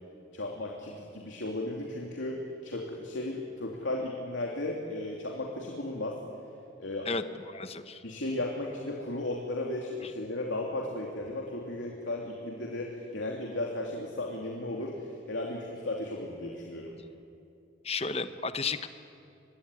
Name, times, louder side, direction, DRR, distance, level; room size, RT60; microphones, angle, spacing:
voice 1, 0.3-6.2 6.8-7.1 8.0-16.9, left 2 dB, 85° left, -1 dB, 3.0 m, -35 dB
voice 2, 7.1-8.0 17.8-18.9, left 4 dB, 35° left, 10 dB, 1.2 m, -33 dB
25.5 x 22.5 x 9.9 m, 2.5 s
head